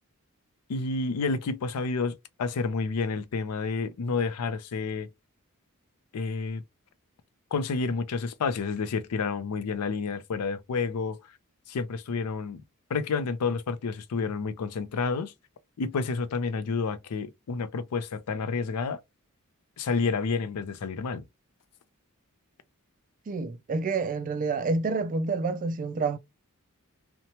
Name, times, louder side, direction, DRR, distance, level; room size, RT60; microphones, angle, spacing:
voice 1, 0.7-5.1 6.1-6.6 7.5-11.2 11.7-12.6 12.9-15.3 15.8-19.0 19.8-21.2, left 4 dB, 90° left, 0.4 m, -30 dB
voice 2, 23.3-26.2, right 4 dB, 35° right, 0.3 m, -28 dB
2.8 x 2.1 x 2.8 m
head